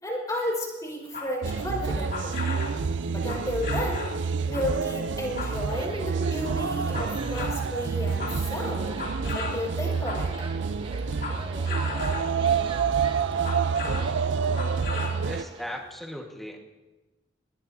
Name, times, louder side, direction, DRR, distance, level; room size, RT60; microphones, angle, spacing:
voice 1, 0.0-2.4 3.0-4.1 4.5-9.0 9.3-10.3, left 1 dB, 20° left, -1 dB, 4.7 m, -32 dB
sound 1, 1.1-2.8 3.2-4.2 4.5-5.9 6.5-7.6 7.9-10.5 11.0-12.4 13.2-14.2 14.4-15.2 15.6-15.7, left 3 dB, 55° left, 2.7 m, -36 dB
sound 2, 1.4-15.4, right 5 dB, 80° right, 0.5 m, -28 dB
sound 3, 5.6-15.8, right 2 dB, 30° right, 1.1 m, -42 dB
voice 2, 15.2-16.6, equal, ahead, 0 dB, 1.4 m, -37 dB
21.0 x 20.5 x 2.7 m, 1.2 s
head